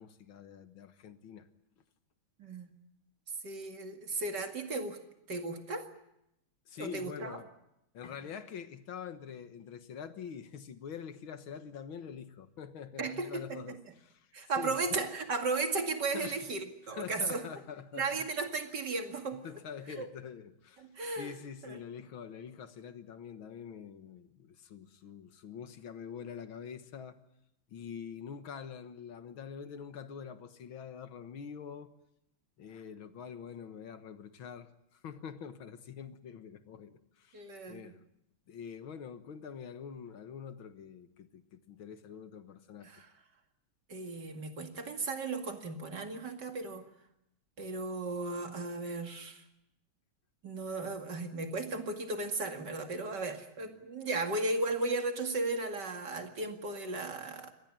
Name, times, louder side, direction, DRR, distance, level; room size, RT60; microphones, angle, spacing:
voice 1, 0.0-1.5 6.7-7.5 7.9-15.0 16.1-16.4 16.8-18.3 19.4-20.9 21.2-27.2 27.7-31.9 32.6-38.0 38.5-42.9, left 7 dB, 75° left, 2.2 m, -45 dB
voice 2, 2.4-2.7 3.4-5.0 5.3-5.9 6.8-7.4 13.0-13.8 14.3-17.4 17.9-19.4 20.0-20.1 20.8-21.3 21.6-21.8 37.3-37.9 42.8-43.1 43.9-46.9 47.6-49.4 50.4-57.5, right 3 dB, 55° right, 2.8 m, -35 dB
25.0 x 18.5 x 8.8 m
omnidirectional pair, 2.2 m